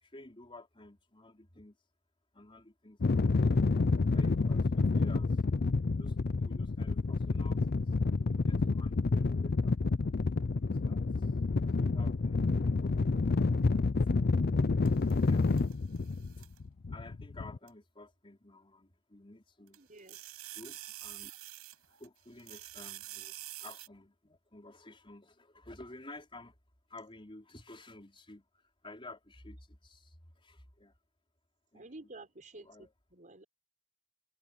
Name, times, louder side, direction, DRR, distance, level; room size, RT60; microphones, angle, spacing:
voice 1, 0.0-1.8 2.3-3.7 4.1-5.4 6.0-7.9 8.3-9.8 10.5-11.3 11.8-13.1 15.2-15.5 16.9-19.8 20.5-21.4 21.8-26.5 26.9-30.9 31.7-32.1 32.5-32.9, left 2 dB, 25° left, 4.8 m, -53 dB
sound 1, 3.0-17.6, left 3 dB, 45° left, 0.5 m, -29 dB
sound 2, 14.8-16.6 17.7-17.8 19.7-22.1 22.4-23.9, right 15 dB, 90° right, 5.8 m, -47 dB
voice 2, 19.8-20.2 31.7-33.4, right 2 dB, 35° right, 5.0 m, -51 dB
head